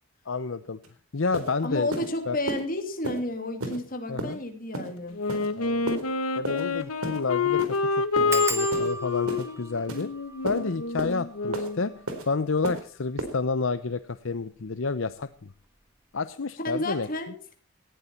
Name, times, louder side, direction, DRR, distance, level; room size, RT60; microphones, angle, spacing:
voice 1, 0.3-0.8 1.1-1.9 2.3-2.4 4.1-4.4 5.6-5.9 6.4-10.1 10.4-11.9 12.3-15.5 16.1-17.1, left 4 dB, 65° left, 13 dB, 0.7 m, -30 dB
sound 1, 0.8-0.9 1.3-1.5 1.9-2.1 2.5-2.6 3.0-3.2 3.6-3.8 4.2-4.3 4.7-4.9 5.3-5.5 5.9-6.0 6.4-6.6 7.0-7.2 7.6-7.8 8.2-8.3 8.7-8.9 9.3-9.4 9.9-10.0 10.5-10.6 11.0-11.1 11.5-11.7 12.1-12.2 12.6-12.8 13.2-13.3, right 1 dB, 85° right, 4.1 m, -32 dB
voice 2, 1.6-5.2 16.6-17.5, left 1 dB, 40° left, 5 dB, 3.0 m, -31 dB
Wind instrument woodwind instrument, 5.1-11.8, left 4 dB, 85° left, 1.5 m, -28 dB
sound 2, 5.1-5.3 5.7-5.8 6.1-6.2 6.7-7.0 7.2-7.3 8.3-13.6 14.3-14.8 15.1-15.4 15.7-15.8, right 2 dB, 10° right, 1.6 m, -39 dB
18.5 x 15.0 x 4.3 m, 0.42 s
head